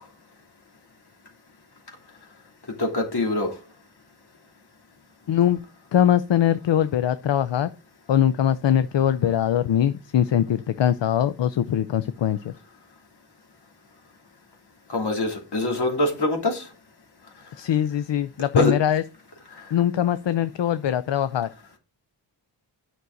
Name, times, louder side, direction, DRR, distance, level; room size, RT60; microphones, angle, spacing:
voice 1, 2.8-3.5 14.9-16.7 18.6-18.7, left 2 dB, 60° left, 2.9 m, -24 dB
voice 2, 5.3-5.6 5.9-7.7 8.1-12.5 17.6-19.0 19.7-21.5, left 10 dB, 80° left, 0.6 m, -22 dB
9.6 x 6.2 x 3.9 m
wide cardioid pair, 110°, 44 cm